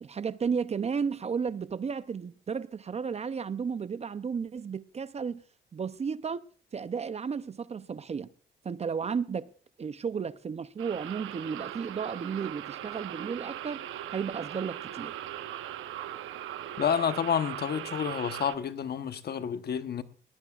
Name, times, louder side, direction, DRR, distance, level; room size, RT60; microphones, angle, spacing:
voice 1, 0.0-5.4 5.7-6.5 6.7-8.3 8.6-9.5 9.8-13.9 14.1-15.2, right 6 dB, 35° right, 0.6 m, -33 dB
sound 1, 10.8-18.5, right 12 dB, 85° right, 0.9 m, -39 dB
voice 2, 16.8-20.0, left 8 dB, 55° left, 1.0 m, -29 dB
20.5 x 18.0 x 2.4 m
cardioid pair, 90°, 20 cm